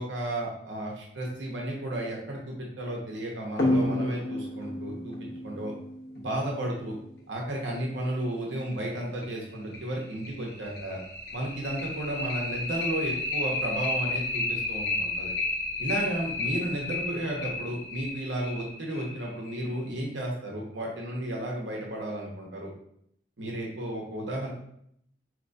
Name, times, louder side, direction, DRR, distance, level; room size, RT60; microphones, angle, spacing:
voice 1, 0.0-5.2 5.4-5.7 6.2-7.0 7.3-11.0 11.3-15.3 15.8-22.7 23.4-24.5, right 1 dB, 80° right, -2 dB, 0.9 m, -33 dB
sound 1, 3.6-6.7 8.2-8.3 8.7-8.8 9.2-9.3 9.7-19.8, left 2 dB, 55° left, 1.0 m, -31 dB
4.4 x 3.0 x 2.6 m, 0.70 s
head